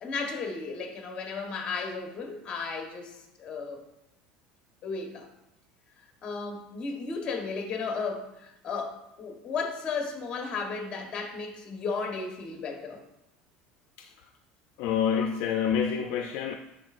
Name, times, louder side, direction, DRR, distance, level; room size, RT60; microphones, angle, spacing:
voice 1, 0.0-3.8 4.8-5.3 6.2-13.0 15.2-15.3, left 4 dB, 35° left, 3 dB, 1.2 m, -34 dB
voice 2, 14.8-16.6, left 7 dB, 65° left, 5 dB, 0.4 m, -27 dB
10.5 x 4.1 x 2.5 m, 0.89 s
cardioid pair, 135°, 3 cm